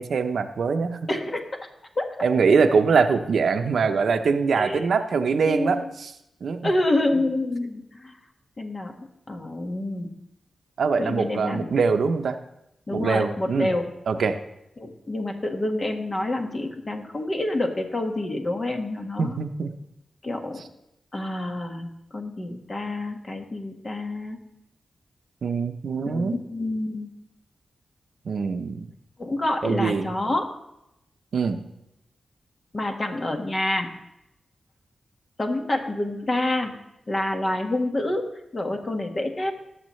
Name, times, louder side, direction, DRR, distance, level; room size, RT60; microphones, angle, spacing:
voice 1, 0.0-1.0 2.2-6.1 6.4-6.7 10.8-12.4 12.9-13.7 14.1-14.4 19.2-19.7 25.4-26.4 28.3-28.8 29.6-30.1 31.3-31.6, right 5 dB, 75° right, 8 dB, 0.7 m, -23 dB
voice 2, 1.1-1.4 2.0-2.1 4.5-5.0 5.4-5.9 6.6-8.1 8.6-8.9 9.3-10.1 11.0-11.7 12.9-13.9 14.8-19.4 20.2-20.6 21.1-24.4 26.1-27.1 29.2-30.5 32.7-33.9 35.4-36.7 37.1-38.2 38.5-39.5, left 1 dB, 40° left, 3 dB, 1.6 m, -27 dB
18.5 x 7.2 x 3.2 m, 0.84 s
cardioid pair, 75°, 0 cm